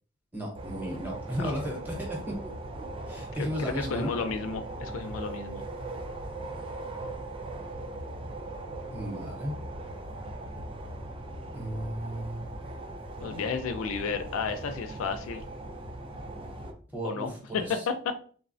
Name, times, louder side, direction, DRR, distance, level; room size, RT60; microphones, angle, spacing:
voice 1, 0.3-2.5 3.1-4.1 8.9-9.6 11.5-12.4 16.9-17.8, equal, 10° right, -2 dB, 0.8 m, -34 dB
sound 1, 0.5-16.7, right 2 dB, 25° right, 0.3 m, -39 dB
voice 2, 3.6-5.6 13.2-15.4 17.0-18.1, left 5 dB, 90° left, 7 dB, 0.4 m, -32 dB
3.2 x 2.0 x 2.5 m, 0.43 s
head